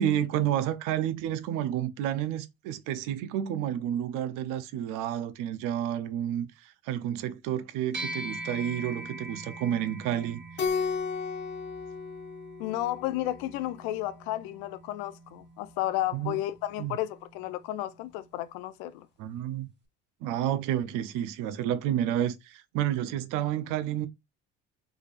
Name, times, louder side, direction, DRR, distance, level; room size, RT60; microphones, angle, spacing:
voice 1, 0.0-10.4 16.1-16.4 16.8-17.0 19.2-19.7 20.2-24.1, right 11 dB, 70° right, 0.6 m, -30 dB
sound 1, 7.9-17.6, right 1 dB, 30° right, 1.1 m, -43 dB
Keyboard (musical), 10.6-13.2, left 5 dB, 30° left, 0.9 m, -33 dB
voice 2, 12.6-19.1, left 14 dB, 80° left, 0.5 m, -32 dB
3.6 x 3.3 x 2.5 m
supercardioid pair, 80°, 33 cm